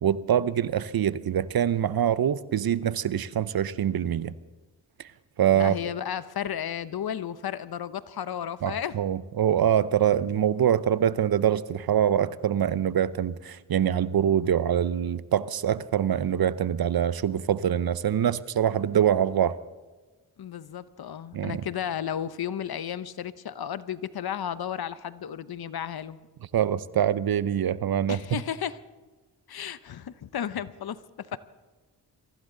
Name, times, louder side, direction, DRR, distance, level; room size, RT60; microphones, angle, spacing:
voice 1, 0.0-4.3 5.4-5.7 8.6-19.6 21.3-21.6 26.5-28.2, right 9 dB, 55° right, 0.8 m, -24 dB
voice 2, 5.5-8.9 20.4-26.2 28.1-28.8 29.5-31.4, left 9 dB, 60° left, 0.9 m, -33 dB
23.5 x 15.5 x 3.9 m
cardioid pair, 55°, 42 cm